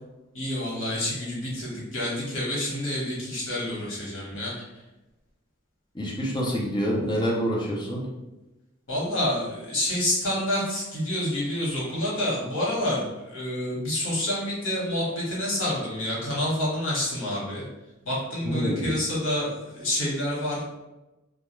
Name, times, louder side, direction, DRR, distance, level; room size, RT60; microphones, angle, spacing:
voice 1, 0.3-4.5 8.9-13.0 13.3-17.6 18.1-20.6, left 1 dB, 75° left, -6 dB, 1.1 m, -28 dB
voice 2, 5.9-8.1 18.4-18.9, equal, 20° left, -3 dB, 0.5 m, -27 dB
2.3 x 2.2 x 3.0 m, 1.0 s
head